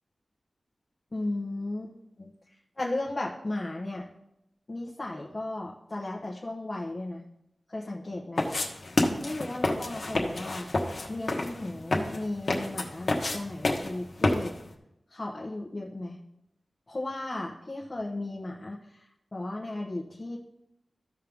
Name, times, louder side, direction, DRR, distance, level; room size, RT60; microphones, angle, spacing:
voice 1, 1.1-2.3 2.8-4.0 4.7-7.2 7.7-8.4 9.2-10.7 11.1-14.5 15.1-16.2 16.9-20.4, left 2 dB, 35° left, -2 dB, 1.1 m, -35 dB
sound 1, 8.4-14.7, left 2 dB, 60° left, 1.3 m, -29 dB
14.0 x 5.5 x 3.6 m, 0.82 s
wide cardioid pair, 95°, 0 cm